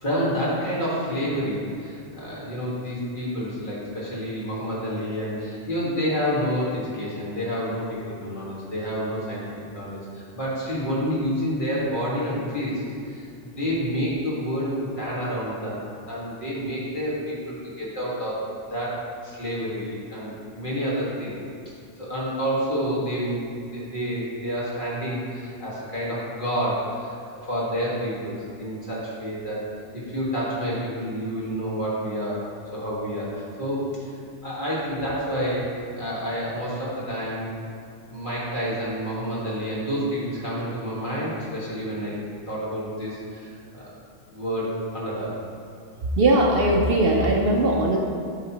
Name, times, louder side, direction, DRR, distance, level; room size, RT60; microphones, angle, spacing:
voice 1, 0.0-9.4 9.7-12.8 13.1-15.8 16.1-18.4 18.7-21.4 22.0-27.1 27.4-29.7 29.9-32.4 32.7-34.0 34.4-37.5 38.1-42.2 42.5-43.8 44.3-45.4, equal, 45° left, -7 dB, 2.0 m, -29 dB
voice 2, 46.2-48.0, right 1 dB, 60° right, -1 dB, 0.8 m, -19 dB
8.7 x 5.8 x 2.9 m, 2.5 s
omnidirectional pair, 1.2 m